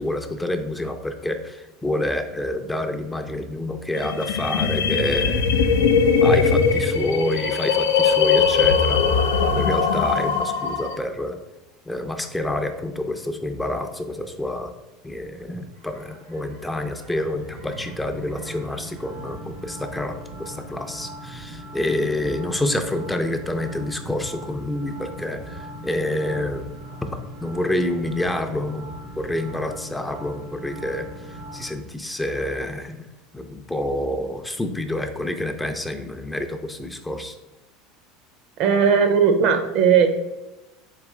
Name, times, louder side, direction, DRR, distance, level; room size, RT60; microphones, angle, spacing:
voice 1, 0.0-5.7 6.2-11.4 11.9-14.7 15.0-26.7 27.4-28.9 29.2-33.1 33.3-37.4, left 1 dB, 10° left, 6 dB, 0.4 m, -28 dB
sound 1, 4.0-11.0, left 5 dB, 80° left, 0.4 m, -20 dB
sound 2, 15.7-31.7, right 1 dB, 80° right, 1.0 m, -39 dB
voice 2, 38.6-40.1, right 7 dB, 60° right, 7 dB, 0.6 m, -17 dB
4.1 x 2.9 x 3.6 m, 1.0 s
hypercardioid pair, 90°, 0 cm